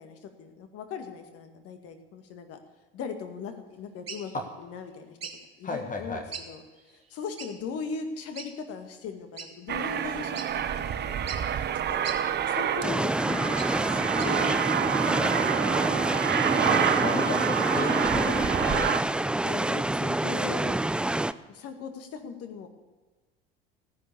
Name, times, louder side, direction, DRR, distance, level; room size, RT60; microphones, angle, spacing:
voice 1, 0.0-2.6 2.9-4.3 4.6-5.2 5.6-6.6 6.9-11.3 11.9-12.1 12.5-15.8 16.4-17.4 17.9-18.4 19.4-20.7 21.5-22.7, left 5 dB, 55° left, 7 dB, 2.1 m, -39 dB
sound 1, 4.1-4.3 5.2-5.4 6.3-6.5 6.8-6.9 7.4-7.5 8.4-8.5 9.4-9.5 10.0-10.1 10.3-10.5 11.3-11.4 12.0-12.2 13.1-13.8 14.1-14.6, right 6 dB, 90° right, 1.4 m, -39 dB
voice 2, 5.6-6.2 16.5-19.0, left 3 dB, 25° left, 4 dB, 1.7 m, -34 dB
Aircraft, 9.7-19.0, right 9 dB, 35° right, 1.0 m, -28 dB
sound 2, 12.8-21.3, right 1 dB, 5° right, 0.3 m, -27 dB
15.5 x 10.5 x 6.9 m, 1.3 s
hypercardioid pair, 65°, 29 cm